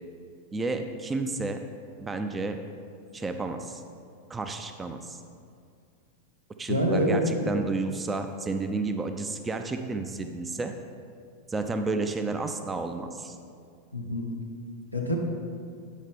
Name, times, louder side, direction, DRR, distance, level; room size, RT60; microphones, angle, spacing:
voice 1, 0.5-1.6 2.0-2.6 3.1-3.8 4.3-5.2 6.6-10.7 11.5-13.4, right 3 dB, 15° right, 6 dB, 0.4 m, -31 dB
voice 2, 6.7-7.5 13.9-14.3 14.9-15.2, equal, 90° right, -1 dB, 0.9 m, -26 dB
8.2 x 5.5 x 3.6 m, 2.3 s
figure-of-eight pair, 90°, 0 cm